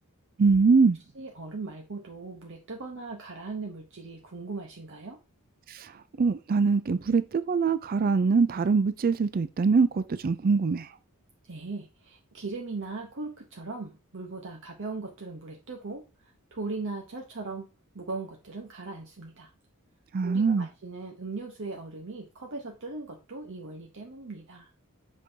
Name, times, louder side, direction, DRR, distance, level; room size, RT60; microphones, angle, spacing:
voice 1, 0.4-1.0 5.7-5.9 6.2-10.9 20.1-20.7, right 4 dB, 40° right, 0.4 m, -23 dB
voice 2, 1.1-5.2 11.5-17.7 17.9-19.5 20.2-24.7, right 3 dB, 55° right, 0.9 m, -39 dB
7.4 x 5.3 x 2.8 m
head